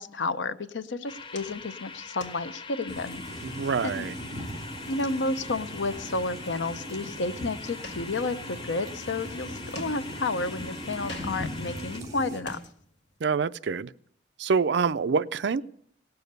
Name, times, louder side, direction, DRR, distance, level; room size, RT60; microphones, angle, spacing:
voice 1, 0.0-3.2 3.8-4.1 4.9-12.6, left 3 dB, 85° left, 0.7 m, -31 dB
sound 1, 1.1-13.2, left 1 dB, 70° left, 1.7 m, -49 dB
sound 2, 1.1-12.0, left 4 dB, 30° left, 0.6 m, -43 dB
sound 3, 2.9-12.4, equal, 20° right, 2.9 m, -39 dB
voice 2, 3.4-4.2 13.2-13.9 14.4-15.6, right 5 dB, 65° right, 0.4 m, -26 dB
18.0 x 7.0 x 6.6 m
head